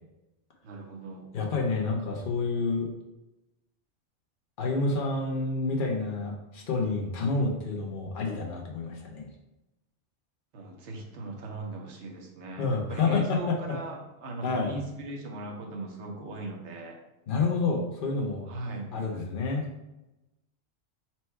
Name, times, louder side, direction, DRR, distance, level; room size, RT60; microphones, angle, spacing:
voice 1, 0.6-1.3 10.5-17.0 18.5-18.9, right 2 dB, 70° right, 1 dB, 1.1 m, -38 dB
voice 2, 1.3-2.9 4.6-9.3 12.6-13.6 14.4-14.7 17.3-18.5 18.9-19.7, left 3 dB, 50° left, 0 dB, 0.9 m, -28 dB
4.4 x 2.2 x 4.4 m, 0.96 s
omnidirectional pair, 1.2 m